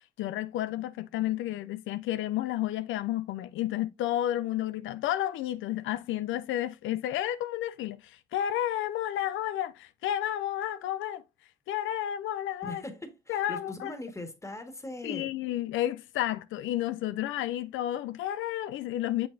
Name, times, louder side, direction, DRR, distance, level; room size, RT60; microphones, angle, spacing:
voice 1, 0.2-11.2 11.7-12.8 13.3-13.9 15.0-19.3, left 12 dB, 80° left, 0.4 m, -31 dB
voice 2, 12.6-15.3, left 2 dB, 15° left, 1.7 m, -40 dB
6.7 x 6.3 x 2.6 m
cardioid pair, 90°, 20 cm